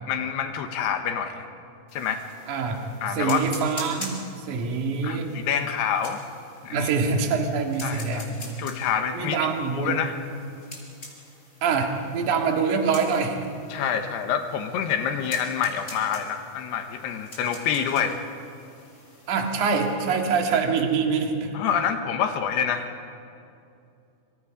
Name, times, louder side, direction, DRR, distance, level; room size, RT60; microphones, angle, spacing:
voice 1, 0.1-1.5 1.9-2.2 3.0-3.4 5.0-6.2 6.6-6.9 7.8-9.4 9.7-10.2 13.7-18.2 21.5-22.9, left 8 dB, 90° left, 6 dB, 3.4 m, -27 dB
sound 1, 1.9-20.0, left 1 dB, 20° left, 5.0 m, -45 dB
voice 2, 2.5-2.8 3.2-4.2 4.5-5.3 6.7-8.3 9.1-10.0 11.6-13.5 19.3-21.5, right 5 dB, 55° right, 2 dB, 3.2 m, -25 dB
26.5 x 26.0 x 5.2 m, 2.6 s
omnidirectional pair, 4.5 m